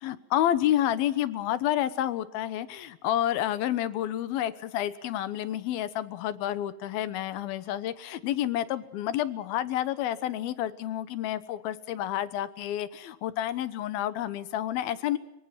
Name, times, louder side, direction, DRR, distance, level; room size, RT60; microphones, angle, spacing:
voice 1, 0.0-15.2, left 12 dB, 80° left, 14 dB, 3.0 m, -29 dB
24.5 x 23.5 x 5.9 m, 0.86 s
omnidirectional pair, 4.3 m